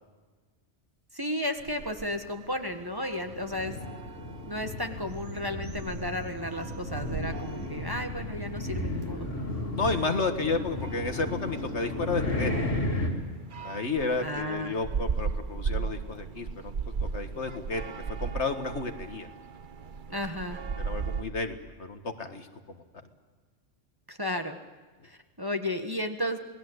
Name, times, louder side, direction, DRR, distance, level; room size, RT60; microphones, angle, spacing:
voice 1, 1.1-3.8 4.5-9.3 14.2-14.7 20.1-20.6 24.1-24.6 25.0-26.4, left 1 dB, 20° right, 5 dB, 1.5 m, -33 dB
sound 1, 1.6-21.2, right 5 dB, 45° right, 1.1 m, -38 dB
sound 2, 3.2-13.1, left 1 dB, 80° left, 4.0 m, -34 dB
voice 2, 9.7-12.5 13.6-16.7 17.0-17.8 18.1-19.3 20.1-20.2 20.8-22.8, left 3 dB, 65° left, 7 dB, 1.9 m, -32 dB
28.0 x 19.5 x 8.1 m, 1.4 s
omnidirectional pair, 1.3 m